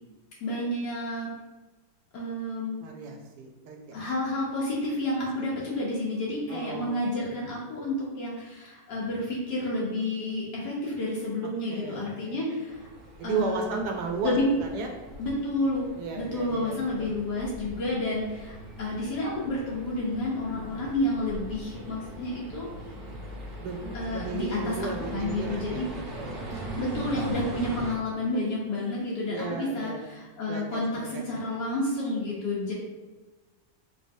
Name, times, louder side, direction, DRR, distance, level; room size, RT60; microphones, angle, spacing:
voice 1, 0.4-1.3 2.1-2.8 3.9-12.9 13.2-13.9 14.2-14.5 15.2-15.8 16.2-22.7 23.9-25.9 26.8-32.7, left 1 dB, 75° left, -5 dB, 1.4 m, -30 dB
voice 2, 2.8-4.0 6.5-7.4 11.7-12.4 13.2-14.9 16.0-17.1 23.6-26.7 27.6-27.7 29.3-30.0 30.5-31.2, right 4 dB, 75° right, 2 dB, 1.0 m, -35 dB
sound 1, 12.7-27.9, right 1 dB, 55° right, 0.6 m, -40 dB
4.5 x 3.2 x 2.6 m, 1.2 s
omnidirectional pair, 1.9 m